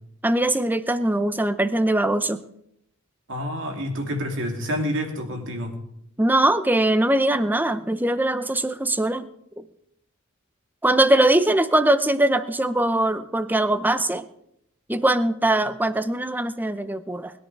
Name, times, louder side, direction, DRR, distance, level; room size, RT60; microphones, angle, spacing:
voice 1, 0.2-2.4 6.2-9.3 9.6-9.7 10.8-14.2 14.9-17.3, right 1 dB, 10° right, 12 dB, 0.7 m, -21 dB
voice 2, 3.3-5.8, equal, 60° right, 3 dB, 2.7 m, -28 dB
20.5 x 11.0 x 4.7 m, 0.77 s
head